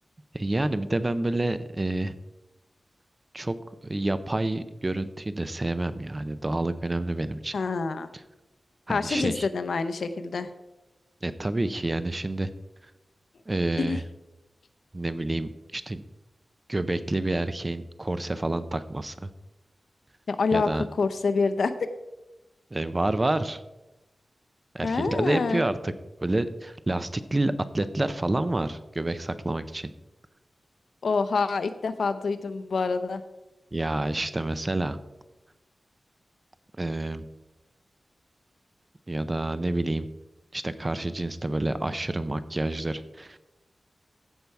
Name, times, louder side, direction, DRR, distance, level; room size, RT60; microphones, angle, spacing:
voice 1, 0.3-2.1 3.3-3.5 3.8-7.5 8.9-9.5 11.2-12.5 13.5-14.0 14.9-16.0 16.7-19.3 20.5-20.8 22.7-23.6 24.7-25.9 26.2-29.9 33.7-35.0 36.8-37.2 39.1-40.1 40.5-43.4, right 2 dB, 25° right, 12 dB, 0.5 m, -28 dB
voice 2, 7.5-8.1 8.9-10.5 13.9-14.0 20.3-20.7 21.0-21.9 24.8-25.6 31.0-33.2, left 4 dB, 80° left, 11 dB, 0.7 m, -26 dB
15.0 x 5.6 x 4.6 m, 1.0 s
wide cardioid pair, 125°, 0 cm